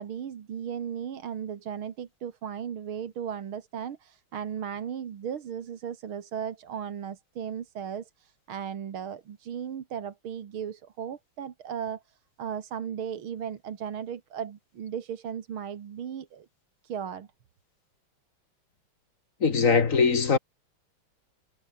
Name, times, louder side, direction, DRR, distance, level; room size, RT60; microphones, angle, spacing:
voice 1, 0.0-16.5 16.8-17.3, right 8 dB, 80° right, 2.5 m, -36 dB
voice 2, 19.4-20.4, left 5 dB, 40° left, 1.9 m, -21 dB
omnidirectional pair, 2.3 m